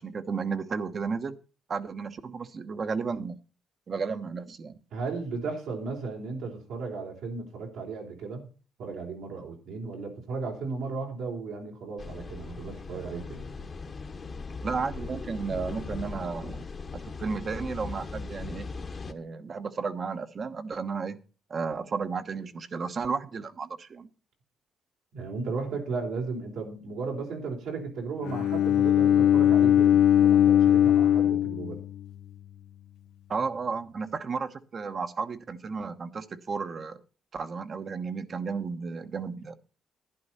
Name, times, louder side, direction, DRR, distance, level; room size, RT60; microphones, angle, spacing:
voice 1, 0.0-1.4 1.7-3.4 3.9-4.7 14.6-16.6 16.9-18.7 19.1-21.2 21.5-24.1 33.3-37.0 37.3-39.6, right 5 dB, 45° right, 1.1 m, -33 dB
voice 2, 4.9-8.5 8.8-13.5 25.1-31.8, right 4 dB, 85° right, 4.0 m, -35 dB
sound 1, 12.0-19.1, left 4 dB, 40° left, 1.2 m, -39 dB
Bowed string instrument, 28.2-32.3, left 10 dB, 85° left, 0.8 m, -21 dB
11.5 x 10.5 x 4.2 m
cardioid pair, 90°, 0 cm